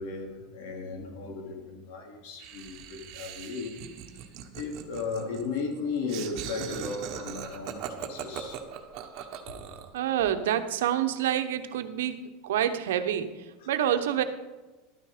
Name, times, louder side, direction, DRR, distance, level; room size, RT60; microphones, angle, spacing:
voice 1, 0.0-3.7 4.5-8.6 13.6-13.7, left 4 dB, 70° left, 2 dB, 2.8 m, -35 dB
Laughter, 2.4-10.0, right 9 dB, 55° right, 1.4 m, -40 dB
voice 2, 9.9-12.2 12.4-13.3 13.7-14.2, right 10 dB, 90° right, 9 dB, 1.0 m, -27 dB
12.0 x 9.3 x 5.0 m, 1.2 s
supercardioid pair, 130°, 0 cm